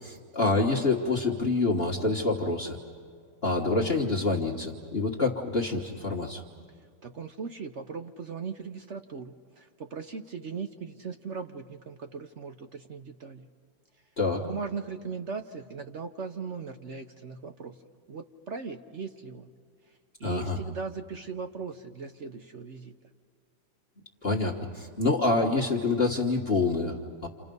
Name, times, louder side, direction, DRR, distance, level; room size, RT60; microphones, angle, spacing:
voice 1, 0.0-2.8 3.4-6.4 14.2-14.5 20.2-20.6 24.2-27.3, left 3 dB, 35° left, -2 dB, 1.6 m, -27 dB
voice 2, 7.0-13.5 14.3-17.7 18.1-19.5 20.2-22.9, right 5 dB, 50° right, 7 dB, 0.9 m, -38 dB
29.5 x 28.0 x 5.4 m, 2.1 s
omnidirectional pair, 2.0 m